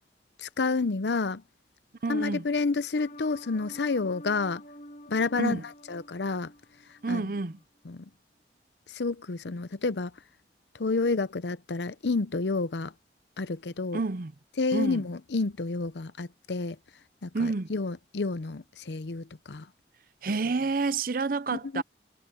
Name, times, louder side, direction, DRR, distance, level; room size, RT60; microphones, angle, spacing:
voice 1, 0.4-1.4 2.1-4.6 5.1-5.6 5.9-6.5 7.1-7.2 7.8-8.0 8.9-10.1 10.8-12.9 13.4-14.0 14.6-16.8 17.2-19.7 21.5-21.8, left 3 dB, 80° left, 0.7 m, -29 dB
voice 2, 2.0-2.4 5.4-5.6 7.0-7.6 13.9-14.3 14.7-15.0 17.3-17.7 20.2-21.8, right 3 dB, 50° right, 0.6 m, -29 dB
sound 1, 3.0-7.2 7.6-7.7, left 1 dB, 45° left, 2.6 m, -48 dB
head